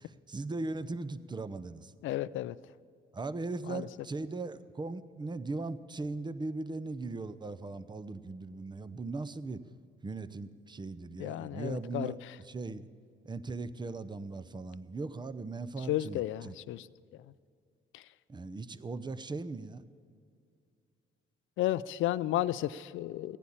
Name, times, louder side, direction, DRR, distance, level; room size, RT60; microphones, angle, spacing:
voice 1, 0.0-1.9 3.1-9.6 10.0-12.2 12.4-12.9 13.2-16.5 18.3-19.8, right 3 dB, 20° right, 14 dB, 0.7 m, -39 dB
voice 2, 2.0-2.6 3.7-3.9 11.2-12.1 15.9-16.9 17.9-18.0 21.6-23.4, left 14 dB, 80° left, 17 dB, 0.4 m, -33 dB
15.5 x 10.0 x 8.7 m, 2.3 s
cardioid pair, 90°, 20 cm